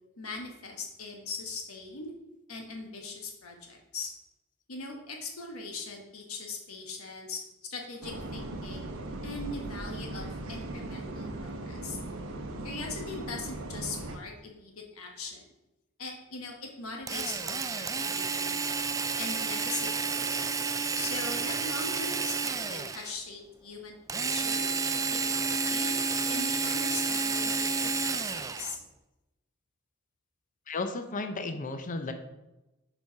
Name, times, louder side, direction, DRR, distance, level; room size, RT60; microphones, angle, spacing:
voice 1, 0.2-2.1 2.5-4.1 4.7-7.4 7.7-8.9 9.2-12.0 12.6-15.5 16.0-18.6 19.2-20.4 20.9-24.7 25.3-25.9 26.3-28.8, left 3 dB, 85° left, 1 dB, 1.4 m, -40 dB
sound 1, 8.0-14.2, right 2 dB, 75° right, 0.9 m, -38 dB
Drill, 17.1-23.1 24.1-28.8, right 4 dB, 15° right, 0.3 m, -30 dB
voice 2, 30.7-32.1, left 3 dB, 40° left, 7 dB, 0.6 m, -34 dB
6.9 x 4.7 x 5.7 m, 1.0 s
head